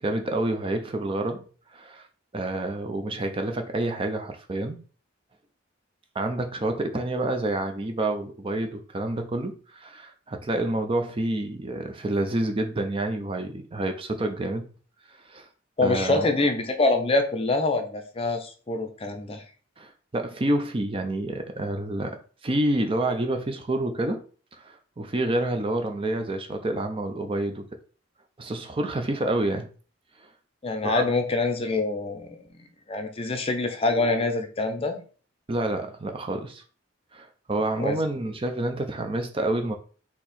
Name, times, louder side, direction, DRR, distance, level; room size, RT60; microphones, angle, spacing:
voice 1, 0.0-1.4 1.7-2.1 2.3-4.8 6.1-14.6 15.1-15.5 15.8-16.2 19.8-22.2 22.4-24.2 24.6-27.7 28.4-29.7 30.8-31.0 35.5-36.6 37.1-39.7, right 1 dB, 30° right, 0.5 m, -28 dB
voice 2, 15.8-19.4 30.6-32.6 32.9-35.0 37.8-38.0, left 2 dB, 30° left, 0.6 m, -25 dB
4.3 x 2.8 x 4.1 m
head